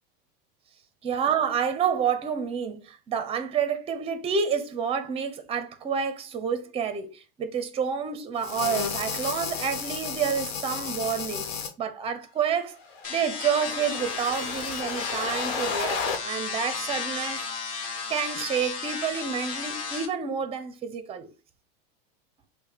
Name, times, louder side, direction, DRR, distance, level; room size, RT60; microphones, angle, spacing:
voice 1, 1.0-12.8 13.1-17.4 18.1-21.3, right 7 dB, 20° right, 0.6 m, -29 dB
sound 1, 8.4-11.7 12.8-16.2, left 5 dB, 85° left, 1.1 m, -33 dB
sound 2, 13.0-20.1, left 5 dB, 25° left, 1.2 m, -34 dB
5.5 x 2.2 x 4.1 m
supercardioid pair, 150°, 30 cm